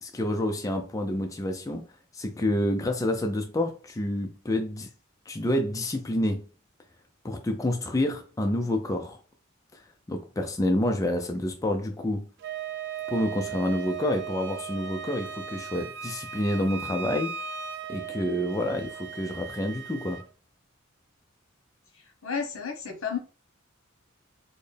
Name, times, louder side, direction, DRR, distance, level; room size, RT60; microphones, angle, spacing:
voice 1, 0.0-1.9 2.1-4.9 5.3-6.5 7.2-9.2 9.7-9.8 10.1-12.3 13.1-17.4 17.9-20.2, left 1 dB, 15° left, 0.4 m, -28 dB
Wind instrument woodwind instrument, 12.4-20.3, right 7 dB, 55° right, 0.4 m, -37 dB
voice 2, 21.9-23.2, left 6 dB, 75° left, 1.0 m, -32 dB
4.2 x 2.1 x 3.3 m
head